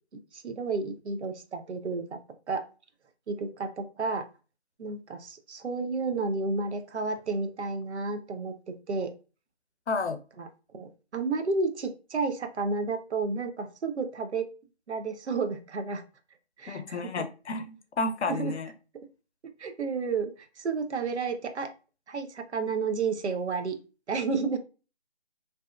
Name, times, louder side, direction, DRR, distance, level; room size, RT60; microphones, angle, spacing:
voice 1, 0.1-2.2 2.5-2.6 3.3-4.2 4.8-9.1 10.4-10.5 10.7-14.5 14.9-16.0 16.6-17.3 18.3-18.6 19.6-21.7 22.1-23.8 24.1-24.6, right 4 dB, 85° right, 0.6 m, -31 dB
voice 2, 9.9-10.2 16.7-18.7, left 3 dB, 85° left, 0.5 m, -31 dB
2.7 x 2.1 x 2.3 m
figure-of-eight pair, 170°, 33 cm